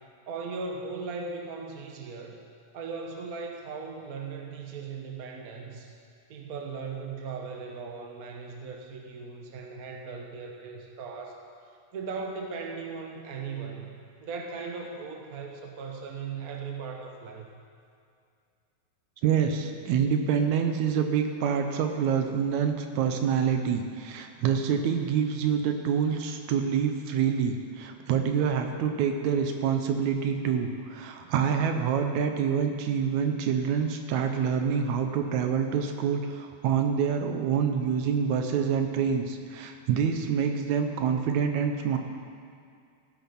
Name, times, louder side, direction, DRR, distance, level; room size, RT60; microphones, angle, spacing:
voice 1, 0.3-2.4 2.7-5.9 6.3-11.4 11.9-13.9 14.2-17.5, right 4 dB, 50° right, 1 dB, 1.1 m, -38 dB
voice 2, 19.2-42.0, right 7 dB, 75° right, 5 dB, 2.1 m, -26 dB
16.0 x 8.9 x 6.0 m, 2.3 s
omnidirectional pair, 3.5 m